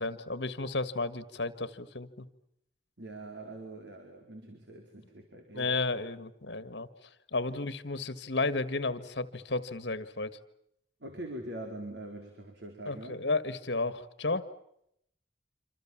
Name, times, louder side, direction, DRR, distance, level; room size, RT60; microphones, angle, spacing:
voice 1, 0.0-2.3 5.5-6.9 7.3-10.4 12.9-14.5, left 3 dB, 70° left, 13 dB, 1.8 m, -33 dB
voice 2, 3.0-5.7 7.5-7.6 11.0-13.2, right 1 dB, 75° right, 3 dB, 4.6 m, -43 dB
27.0 x 27.0 x 7.4 m, 0.76 s
head